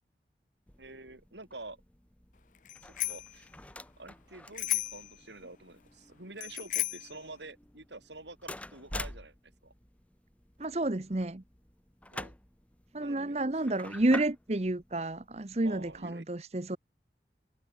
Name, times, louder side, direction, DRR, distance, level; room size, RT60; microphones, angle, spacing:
sound 1, 0.7-16.1, left 1 dB, 10° left, 1.2 m, -48 dB
voice 1, 0.8-1.8 2.8-3.5 4.0-9.3 9.6-9.7 12.1-12.3 12.9-13.8 15.6-16.2, right 2 dB, 85° right, 7.6 m, -48 dB
Bicycle bell, 2.6-3.4 4.5-5.1 6.4-7.1, left 17 dB, 45° left, 0.5 m, -33 dB
voice 2, 10.6-11.4 12.9-16.8, right 2 dB, 35° right, 0.9 m, -30 dB
head